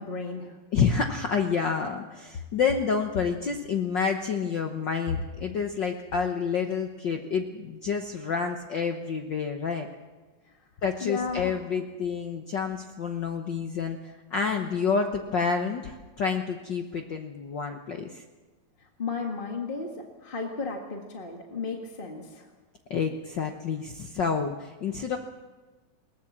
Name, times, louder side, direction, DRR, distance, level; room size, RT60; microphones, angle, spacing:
voice 1, 0.0-0.6 10.5-10.6 11.0-11.6 18.8-22.5, left 4 dB, 25° left, 2 dB, 1.2 m, -34 dB
voice 2, 0.7-9.9 10.8-18.2 22.9-25.2, left 6 dB, 90° left, 4 dB, 0.9 m, -28 dB
21.0 x 19.0 x 7.3 m, 1.3 s
omnidirectional pair, 3.6 m